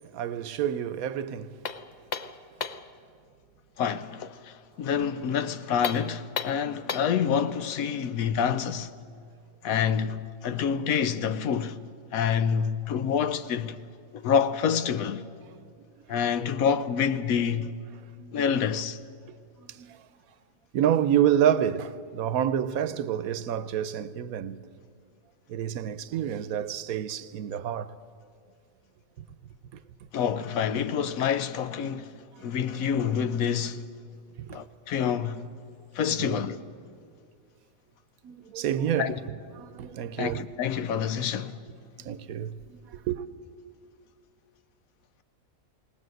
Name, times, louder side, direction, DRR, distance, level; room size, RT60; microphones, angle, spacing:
voice 1, 0.1-1.6 18.2-18.4 19.3-20.0 20.7-24.6 25.5-27.9 30.9-31.0 32.3-32.7 34.5-34.6 36.2-36.5 38.2-39.2 39.5-40.4 42.0-43.2, right 10 dB, 80° right, 1.2 m, -28 dB
sound 1, 1.6-2.9 5.7-7.2, left 6 dB, 50° left, 0.5 m, -34 dB
voice 2, 3.8-8.9 9.6-11.8 12.1-13.8 14.1-15.3 16.1-17.7 18.3-19.0 30.1-33.8 34.5-35.5 35.9-36.6 39.0-39.1 40.2-41.6, left 7 dB, 80° left, 1.2 m, -27 dB
19.0 x 19.0 x 7.8 m
omnidirectional pair, 1.5 m